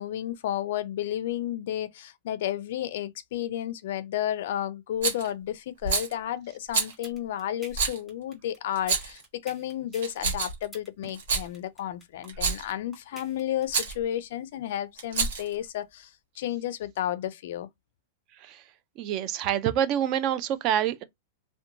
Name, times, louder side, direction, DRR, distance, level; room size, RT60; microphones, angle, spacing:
voice 1, 0.0-17.7, left 11 dB, 65° left, 0.3 m, -32 dB
Rattle, 5.0-5.3 5.8-6.1 6.7-6.9 7.7-8.0 8.8-9.2 10.0-10.7 11.1-11.5 12.3-12.7 13.7-13.9 15.0-15.5, right 5 dB, 85° right, 1.2 m, -27 dB
sound 1, 6.9-13.9, right 1 dB, ahead, 1.4 m, -47 dB
voice 2, 19.0-21.0, right 10 dB, 40° right, 0.4 m, -26 dB
2.8 x 2.1 x 2.5 m
supercardioid pair, 150°, 0 cm